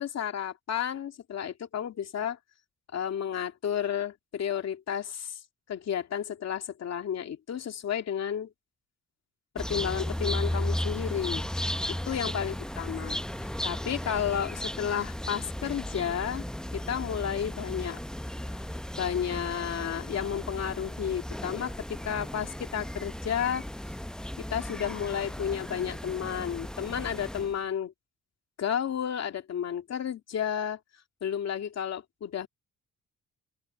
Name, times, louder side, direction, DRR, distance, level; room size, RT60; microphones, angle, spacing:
voice 1, 0.0-2.4 2.9-5.4 5.7-8.5 9.5-11.4 12.1-13.2 13.6-16.4 16.7-18.0 18.5-18.6 19.0-23.7 24.4-27.9 28.6-30.8 31.2-32.5, left 8 dB, 60° left, 2.6 m, -32 dB
sound 1, 9.6-27.6, left 1 dB, ahead, 0.6 m, -35 dB
open air
cardioid pair, 90°, 30 cm